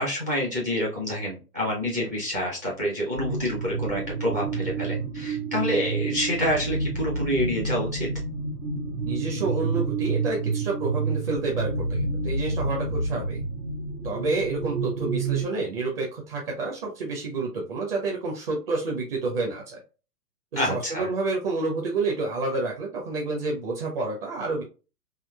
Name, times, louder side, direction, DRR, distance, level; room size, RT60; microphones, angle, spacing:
voice 1, 0.0-8.1 20.6-21.1, left 1 dB, 15° right, -3 dB, 0.4 m, -27 dB
sound 1, 3.2-15.5, right 3 dB, 75° right, 1.0 m, -29 dB
voice 2, 9.0-13.4 14.0-19.8 20.5-24.6, right 3 dB, 35° right, -1 dB, 0.8 m, -29 dB
3.7 x 2.7 x 2.2 m, 0.33 s
figure-of-eight pair, 120°, 47 cm